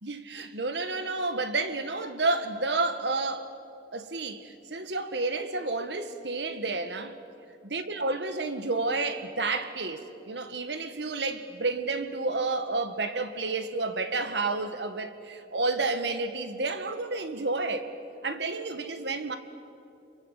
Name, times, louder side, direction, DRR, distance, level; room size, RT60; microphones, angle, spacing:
voice 1, 0.0-3.5 3.9-7.2 7.6-17.9 18.2-19.4, right 3 dB, 75° right, 1.7 m, -30 dB
27.5 x 23.0 x 8.3 m
head